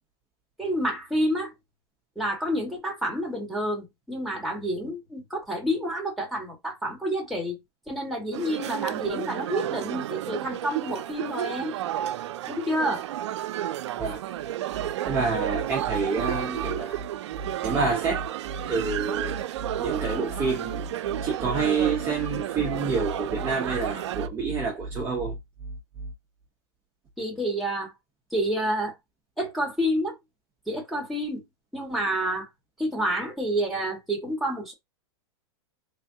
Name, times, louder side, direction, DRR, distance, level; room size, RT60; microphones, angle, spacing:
voice 1, 0.6-1.5 2.1-7.6 7.9-11.7 12.5-13.1 27.2-27.9 28.3-28.9 29.4-30.1 30.7-31.4 31.7-32.5 32.8-34.7, equal, ahead, 1.4 m, -29 dB
sound 1, 8.3-24.3, right 12 dB, 80° right, 0.4 m, -32 dB
voice 2, 15.1-17.0 17.6-18.3 18.7-19.4 19.8-20.9 21.2-25.4, right 4 dB, 15° right, 0.7 m, -27 dB
3.3 x 2.2 x 2.7 m
supercardioid pair, 140°, 15 cm